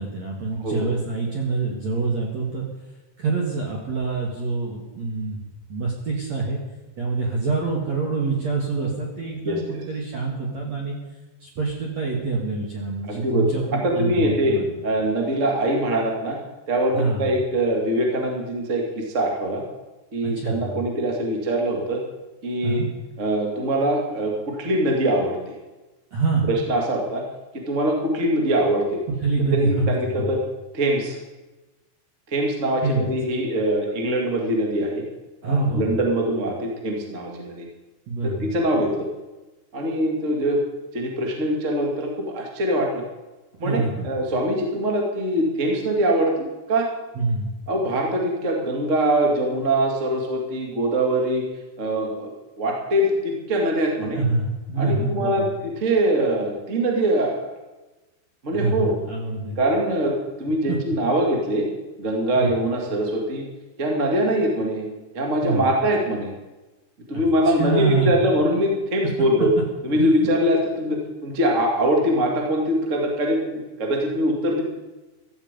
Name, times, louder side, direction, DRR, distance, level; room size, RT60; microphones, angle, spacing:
voice 1, 0.0-2.7 3.2-5.4 5.7-6.6 7.0-11.0 11.4-14.8 16.9-17.3 20.2-20.8 22.6-22.9 26.1-26.5 29.2-29.9 30.2-30.3 32.8-33.1 35.4-36.0 38.1-38.5 43.6-44.1 47.2-47.5 54.1-55.5 58.5-59.6 60.7-60.8 62.4-62.5 65.4-65.7 67.1-68.2 69.9-70.1, right 3 dB, 55° right, -1 dB, 2.0 m, -25 dB
voice 2, 9.4-9.8 13.1-14.6 14.8-16.4 16.7-19.6 20.1-22.0 22.4-22.8 23.2-25.5 26.5-27.2 27.7-29.0 29.5-30.4 30.7-31.2 32.3-35.0 35.4-37.6 38.2-39.1 39.7-40.6 40.9-43.0 43.6-46.3 46.7-46.9 47.7-51.4 51.8-52.3 52.6-54.2 54.8-57.5 58.4-58.9 59.6-61.7 62.0-63.4 63.8-64.8 65.1-66.3 67.1-69.5 69.8-74.6, right 1 dB, 35° right, 0 dB, 1.2 m, -23 dB
16.0 x 13.5 x 5.4 m, 1.1 s
omnidirectional pair, 5.9 m